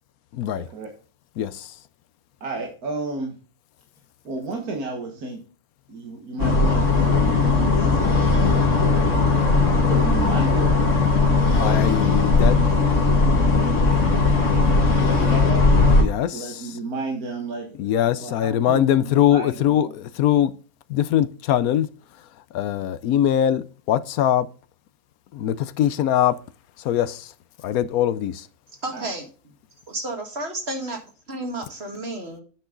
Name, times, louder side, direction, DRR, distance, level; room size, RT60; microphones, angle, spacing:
voice 1, 0.5-0.9 2.4-3.4 4.2-5.4 5.9-8.6 9.8-10.7 11.3-11.8 14.9-15.7 16.3-17.9 18.2-19.9 28.9-29.1, right 3 dB, 85° right, 2.1 m, -32 dB
voice 2, 1.4-1.7 11.6-12.6 16.0-16.5 17.8-20.5 20.9-21.9 22.5-24.5 25.3-26.3 26.8-27.3 27.6-28.4, left 11 dB, 80° left, 1.1 m, -22 dB
sound 1, 6.4-16.0, left 3 dB, 55° left, 2.2 m, -18 dB
voice 3, 28.8-29.3 29.9-31.0 31.3-32.4, right 2 dB, 45° right, 2.0 m, -31 dB
9.0 x 6.1 x 3.8 m
omnidirectional pair, 1.6 m